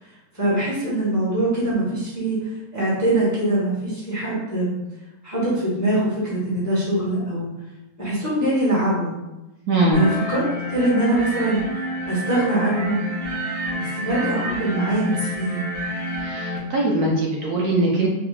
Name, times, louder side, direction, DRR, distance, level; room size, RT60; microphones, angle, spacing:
voice 1, 0.3-4.7 5.2-7.5 8.0-9.1 9.9-10.4 10.7-11.6 12.1-13.1 13.7-15.7, right 1 dB, 15° left, -8 dB, 0.8 m, -23 dB
voice 2, 9.7-10.0 16.2-18.1, right 1 dB, 70° right, -2 dB, 1.0 m, -21 dB
sound 1, 9.9-16.6, equal, 45° right, 0.4 m, -29 dB
3.4 x 3.3 x 2.3 m, 0.99 s
omnidirectional pair, 1.9 m